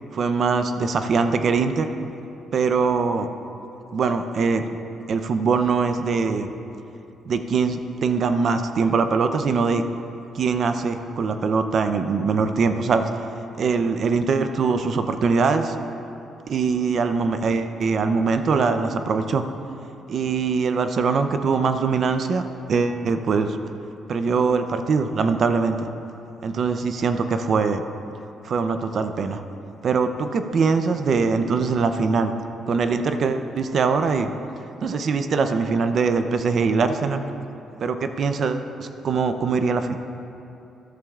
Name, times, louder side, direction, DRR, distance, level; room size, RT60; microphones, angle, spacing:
voice 1, 0.1-1.9 2.5-3.3 3.9-4.6 5.1-6.5 7.3-9.8 10.3-13.1 13.6-15.7 16.5-19.4 20.1-22.4 22.7-23.6 24.1-25.8 26.4-27.8 28.4-29.4 29.8-32.3 32.7-34.3 34.8-37.2 37.8-40.0, right 5 dB, 55° right, 8 dB, 0.6 m, -22 dB
13.5 x 13.0 x 2.5 m, 2.8 s
cardioid pair, 90°, 0 cm